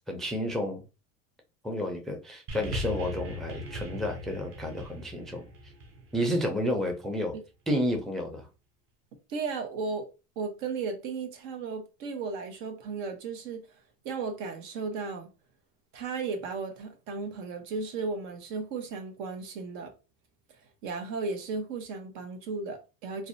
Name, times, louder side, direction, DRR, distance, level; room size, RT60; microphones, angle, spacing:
voice 1, 0.1-0.8 1.6-5.5 6.1-7.3 7.7-8.5, equal, ahead, 0.4 m, -31 dB
sound 1, 2.5-7.0 7.9-8.0, left 1 dB, 35° right, 0.7 m, -39 dB
voice 2, 9.3-10.1 10.4-13.6 14.0-15.3 15.9-19.9 20.8-23.3, right 4 dB, 75° right, 0.9 m, -35 dB
2.6 x 2.1 x 2.5 m
hypercardioid pair, 95°, 40 cm